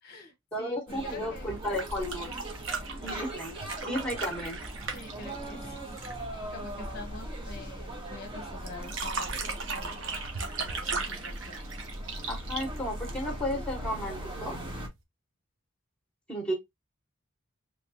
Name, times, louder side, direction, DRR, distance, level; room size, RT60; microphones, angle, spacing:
voice 1, 0.0-0.8 1.0-1.6 4.9-6.2 6.5-11.7, left 2 dB, 45° left, 0.7 m, -47 dB
voice 2, 0.5-2.3 3.0-3.6 3.8-4.6 12.3-14.6 16.3-16.5, equal, 5° left, 1.1 m, -33 dB
sound 1, 0.9-14.9, right 1 dB, 25° right, 1.0 m, -39 dB
sound 2, 1.6-6.2 8.7-13.5 14.9-15.0, right 4 dB, 65° right, 0.9 m, -37 dB
3.3 x 3.1 x 2.7 m
head